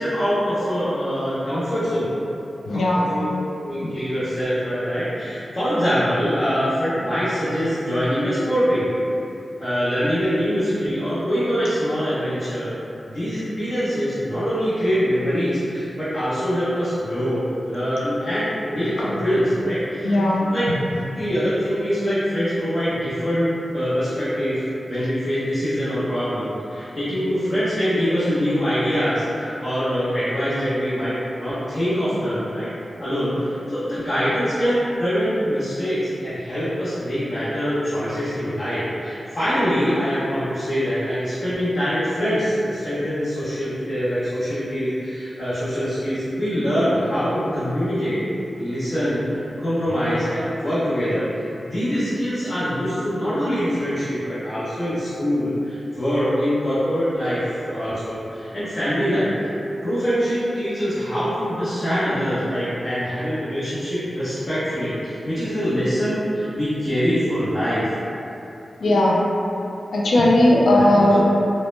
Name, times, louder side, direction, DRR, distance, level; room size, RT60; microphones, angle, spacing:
voice 1, 0.0-2.1 2.7-3.3 3.6-8.9 9.6-12.7 13.1-20.7 21.2-32.7 33.0-48.2 48.6-59.5 59.8-67.8 71.0-71.2, equal, 40° left, -14 dB, 0.6 m, -24 dB
voice 2, 2.7-3.1 20.0-20.4 68.8-69.2 69.9-71.2, left 1 dB, 90° left, -4 dB, 0.3 m, -17 dB
2.0 x 2.0 x 3.0 m, 2.7 s
wide cardioid pair, 110°, 0 cm